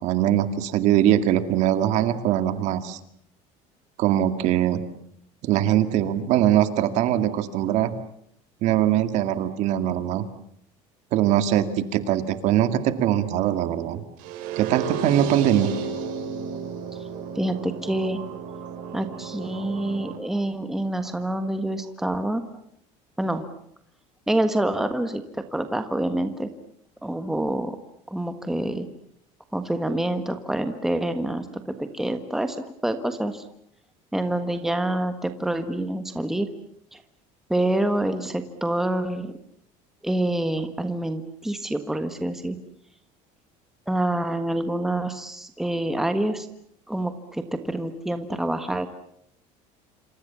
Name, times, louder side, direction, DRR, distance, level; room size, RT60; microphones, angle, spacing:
voice 1, 0.0-3.0 4.0-4.8 5.4-7.9 8.6-10.2 11.1-14.0 14.6-15.7, right 11 dB, 50° right, 10 dB, 2.3 m, -22 dB
sound 1, 14.2-20.2, right 6 dB, 70° right, 6.2 m, -33 dB
voice 2, 17.3-18.2 18.9-22.6 23.2-23.5 24.3-26.5 27.0-27.8 28.1-28.9 29.5-33.4 34.1-36.5 36.9-37.0 37.5-39.3 40.0-42.6 43.9-46.5 46.9-48.9, right 1 dB, ahead, 8 dB, 1.4 m, -27 dB
27.5 x 26.5 x 7.2 m, 0.70 s
cardioid pair, 170°, 15 cm